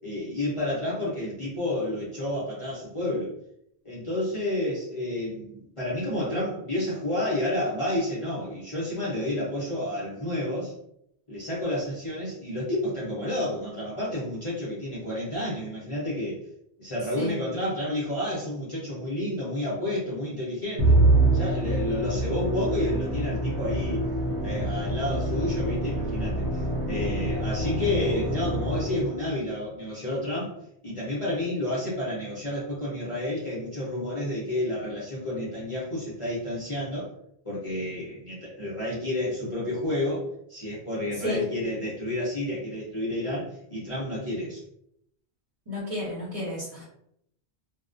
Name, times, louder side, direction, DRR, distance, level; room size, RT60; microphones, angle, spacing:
voice 1, 0.0-3.3 3.8-10.7 11.3-16.4 16.8-21.0 21.3-24.0 24.4-30.5 30.8-37.1 37.4-44.6, left 1 dB, 35° left, -9 dB, 0.7 m, -30 dB
Musical instrument, 20.8-29.3, right 2 dB, 80° right, 0.9 m, -26 dB
voice 2, 45.7-46.8, left 2 dB, 35° right, -7 dB, 0.9 m, -31 dB
2.3 x 2.1 x 2.5 m, 0.74 s
omnidirectional pair, 1.1 m